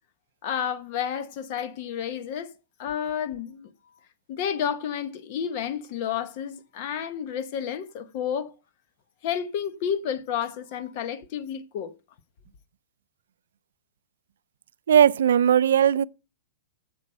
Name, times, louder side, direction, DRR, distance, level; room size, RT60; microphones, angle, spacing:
voice 1, 0.4-2.5 2.8-3.7 4.3-8.5 9.2-11.9, left 8 dB, 35° left, 0.9 m, -31 dB
voice 2, 14.9-16.0, right 9 dB, 75° right, 0.4 m, -18 dB
8.1 x 7.7 x 5.4 m
supercardioid pair, 180°, 0 cm